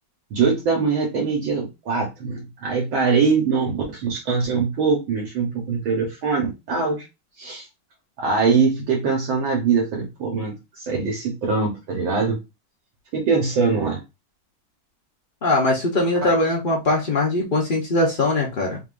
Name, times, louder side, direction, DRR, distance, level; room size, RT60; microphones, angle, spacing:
voice 1, 0.3-7.1 7.4-7.7 8.2-12.4 13.1-14.0, right 5 dB, 70° right, 1.8 m, -22 dB
voice 2, 15.4-18.8, left 2 dB, 80° left, 0.4 m, -21 dB
3.9 x 3.8 x 2.5 m
omnidirectional pair, 2.3 m